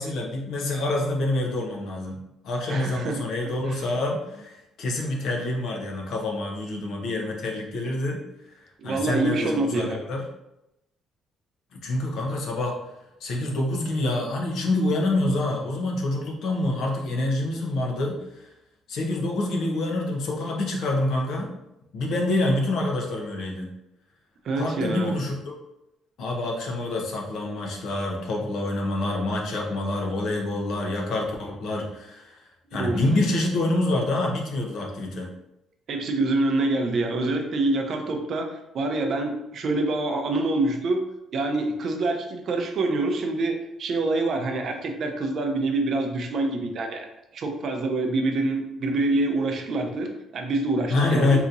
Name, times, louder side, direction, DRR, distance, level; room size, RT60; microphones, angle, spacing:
voice 1, 0.0-8.2 8.8-10.2 11.7-12.8 13.2-18.5 18.9-21.5 21.9-23.7 24.6-25.4 26.2-32.4 32.7-35.3 50.9-51.4, left 2 dB, 65° left, 0 dB, 0.7 m, -26 dB
voice 2, 2.7-3.3 3.7-3.9 8.8-10.0 24.4-25.2 32.7-33.0 35.9-41.0 41.3-47.1 47.3-51.4, right 2 dB, 50° right, 4 dB, 0.5 m, -26 dB
3.9 x 2.8 x 2.5 m, 0.89 s
cardioid pair, 155°, 0 cm